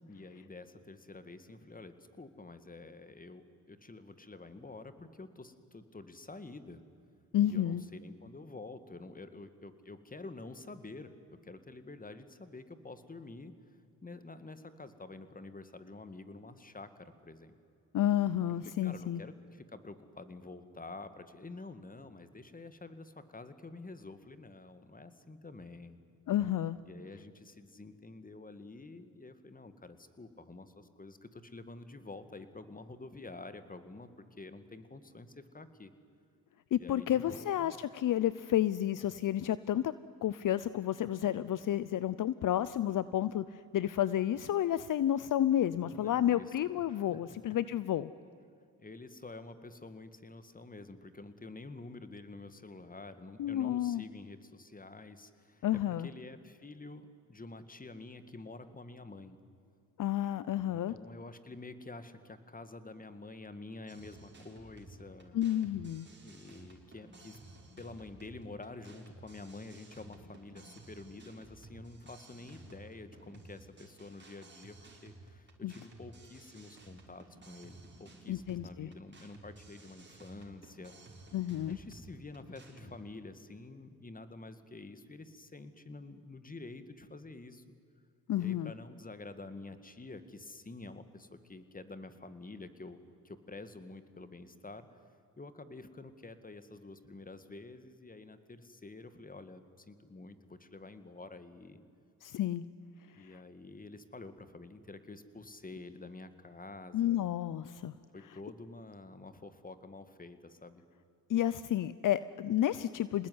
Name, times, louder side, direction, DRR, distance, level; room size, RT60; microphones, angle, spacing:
voice 1, 0.1-6.8 7.5-13.5 14.0-17.6 18.8-26.0 26.8-35.9 36.8-37.7 45.9-47.2 48.8-59.4 60.7-65.4 66.2-67.4 67.8-74.8 75.0-80.9 81.7-87.7 88.4-93.0 93.2-95.0 95.4-101.8 103.2-107.3 108.1-110.8, left 3 dB, 25° left, 11 dB, 2.2 m, -48 dB
voice 2, 7.3-7.8 17.9-19.2 26.3-26.8 36.7-39.9 40.2-48.1 53.4-54.0 55.6-56.1 60.0-60.9 65.3-66.1 75.6-75.7 78.3-78.9 81.3-81.8 88.3-88.7 102.2-102.6 103.1-103.4 106.9-107.9 111.3-113.3, left 12 dB, 60° left, 16 dB, 0.8 m, -31 dB
sound 1, 63.9-82.9, right 2 dB, 30° right, 5.6 m, -55 dB
27.5 x 19.5 x 9.7 m, 2.5 s
cardioid pair, 70°, 36 cm